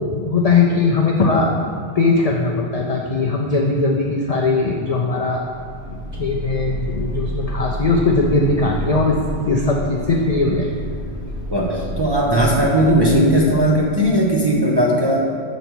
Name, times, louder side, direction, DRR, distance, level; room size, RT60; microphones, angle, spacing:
voice 1, 0.0-1.6 1.8-5.4 5.9-10.7, left 3 dB, 65° left, 0 dB, 0.3 m, -19 dB
sound 1, 5.1-14.5, equal, 65° right, 1.6 m, -30 dB
voice 2, 11.5-15.3, equal, 35° right, -3 dB, 0.4 m, -17 dB
6.7 x 4.0 x 4.4 m, 2.2 s
omnidirectional pair, 1.2 m